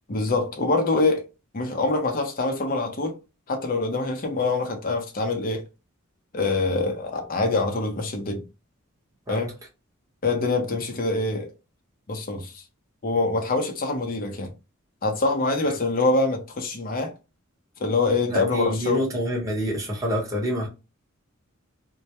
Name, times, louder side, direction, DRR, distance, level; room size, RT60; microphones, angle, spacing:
voice 1, 0.1-1.3 1.5-3.1 3.5-5.6 6.3-8.4 9.3-9.5 10.2-11.5 12.1-12.6 13.0-14.5 15.0-17.1 17.8-19.0, left 3 dB, 40° left, 0.6 m, -25 dB
voice 2, 18.3-20.7, equal, 15° right, 0.8 m, -27 dB
2.2 x 2.0 x 2.8 m
head